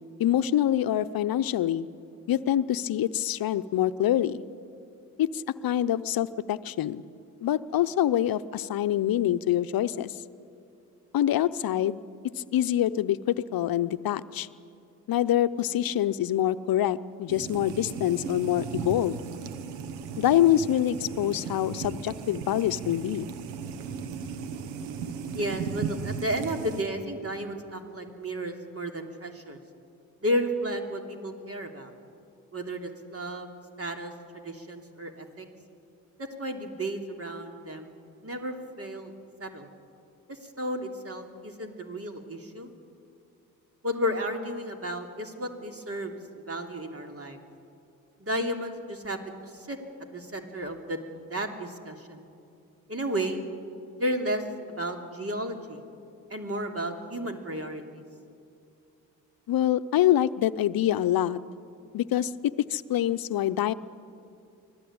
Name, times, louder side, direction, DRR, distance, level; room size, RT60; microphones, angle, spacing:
voice 1, 0.2-1.9 2.3-4.4 5.2-7.0 7.4-10.1 11.1-12.0 12.5-14.5 15.1-19.2 20.2-23.3 59.5-61.4 61.9-62.3 62.7-63.7, left 12 dB, 60° left, 14 dB, 0.9 m, -25 dB
sound 1, 17.3-26.8, right 6 dB, 85° right, 1.2 m, -36 dB
voice 2, 25.3-29.6 30.2-31.9 32.5-33.5 33.8-35.5 36.2-37.9 38.2-39.1 39.4-39.7 40.3-42.7 43.8-47.4 48.2-51.0 51.3-52.2 52.9-53.4 54.0-55.8 56.3-58.0, equal, 35° right, 4 dB, 3.1 m, -33 dB
24.5 x 16.0 x 8.8 m, 2.6 s
hypercardioid pair, 45°, 40 cm